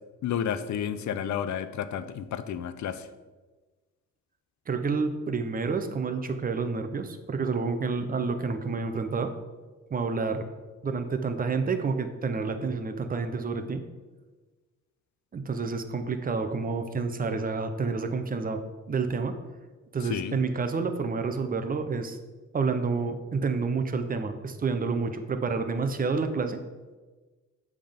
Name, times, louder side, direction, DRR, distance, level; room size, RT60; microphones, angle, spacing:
voice 1, 0.2-3.1 20.1-20.4, left 9 dB, 70° left, 12 dB, 0.5 m, -31 dB
voice 2, 4.7-9.3 9.9-10.5 10.8-13.8 15.3-18.6 18.9-19.4 19.9-22.2 22.5-26.6, right 4 dB, 30° right, 8 dB, 0.7 m, -29 dB
7.6 x 3.6 x 5.1 m, 1.3 s
cardioid pair, 100°, 30 cm